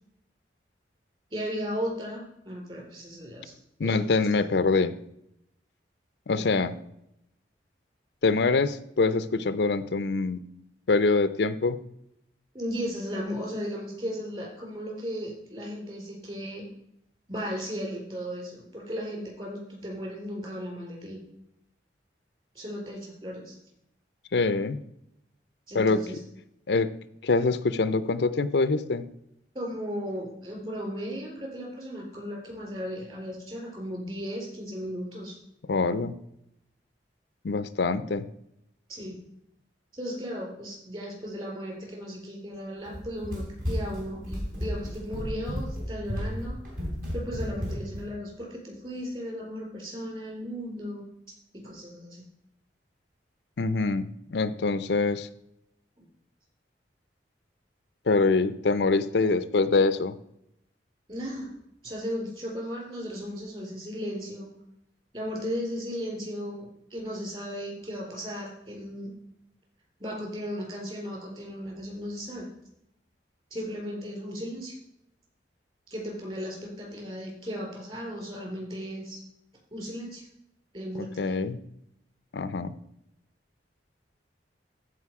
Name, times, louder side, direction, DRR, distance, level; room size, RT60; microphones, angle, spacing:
voice 1, 1.3-3.5 3.8-4.0 4.3-4.4 12.5-16.7 17.3-21.2 22.5-23.6 25.7-26.2 29.5-35.4 38.9-39.2 39.9-46.6 47.1-51.0 51.5-52.2 61.1-61.5 61.8-64.5 65.1-69.1 70.0-72.4 73.5-74.7 75.9-79.2 79.7-80.3 80.7-81.4, equal, 30° right, -1 dB, 4.2 m, -36 dB
voice 2, 3.8-5.0 6.3-6.8 8.2-10.4 10.9-11.8 24.3-24.8 25.7-26.0 26.7-26.9 27.2-29.0 35.7-36.1 37.4-38.2 53.6-55.3 58.1-60.1 81.2-81.6 82.3-82.7, left 3 dB, 70° left, 13 dB, 0.5 m, -24 dB
Run, 42.8-48.1, equal, 50° right, 3.4 m, -33 dB
14.5 x 4.9 x 4.8 m, 0.78 s
head